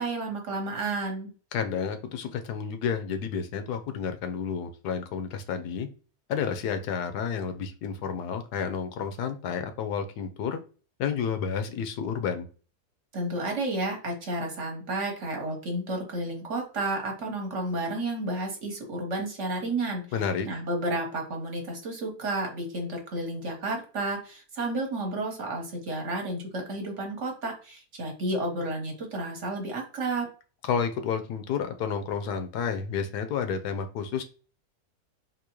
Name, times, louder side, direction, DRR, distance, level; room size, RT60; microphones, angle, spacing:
voice 1, 0.0-1.3 13.1-20.0 20.4-30.3, right 2 dB, 55° right, 2 dB, 1.2 m, -31 dB
voice 2, 1.5-5.9 6.3-10.6 11.0-12.5 20.1-20.5 30.6-34.2, left 7 dB, 80° left, 9 dB, 1.2 m, -30 dB
3.7 x 2.8 x 2.9 m, 0.37 s
omnidirectional pair, 1.7 m